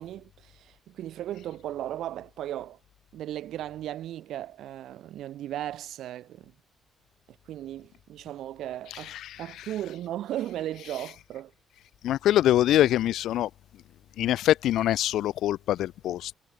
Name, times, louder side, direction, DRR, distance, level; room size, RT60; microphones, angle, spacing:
voice 1, 0.0-2.8 3.1-6.5 7.3-11.5, right 12 dB, 75° right, 5.0 m, -36 dB
voice 2, 9.1-9.4 12.0-13.5 14.2-16.3, left 13 dB, 80° left, 2.4 m, -24 dB
cardioid pair, 165°, 0 cm